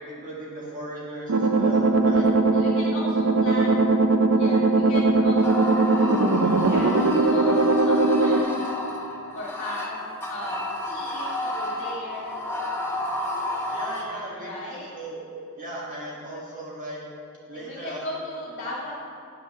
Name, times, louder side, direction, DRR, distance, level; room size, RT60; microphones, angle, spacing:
voice 1, 0.0-2.3 13.6-15.2 15.6-17.0 17.5-18.0, right 1 dB, 35° right, -5 dB, 1.7 m, -37 dB
sound 1, 1.3-8.4, right 3 dB, 75° right, 0.6 m, -20 dB
voice 2, 2.5-4.0 4.3-5.8 6.4-8.6 9.3-12.3 14.0-14.9 17.5-18.9, left 1 dB, 50° left, -5 dB, 1.8 m, -37 dB
sound 2, 5.4-14.0, left 1 dB, 10° left, 1.2 m, -31 dB
8.9 x 6.4 x 6.8 m, 2.9 s
head